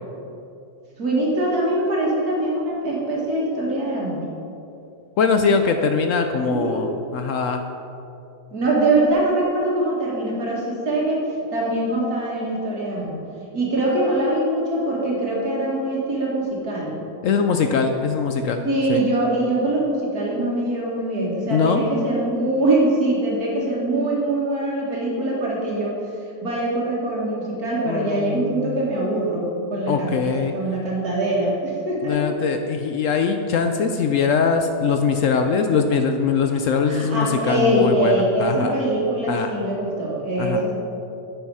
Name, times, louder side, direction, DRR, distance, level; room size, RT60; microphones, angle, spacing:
voice 1, 1.0-4.2 6.4-6.9 8.5-13.2 13.5-17.0 18.6-26.0 26.4-32.2 36.9-40.7, right 1 dB, 60° right, -4 dB, 2.4 m, -23 dB
voice 2, 5.2-7.6 17.2-18.6 18.9-19.0 21.5-21.8 27.9-28.8 29.9-30.5 32.0-38.7 39.3-39.5 40.4-40.6, left 5 dB, 70° left, 6 dB, 0.7 m, -22 dB
9.6 x 6.9 x 4.8 m, 2.7 s
omnidirectional pair, 1.8 m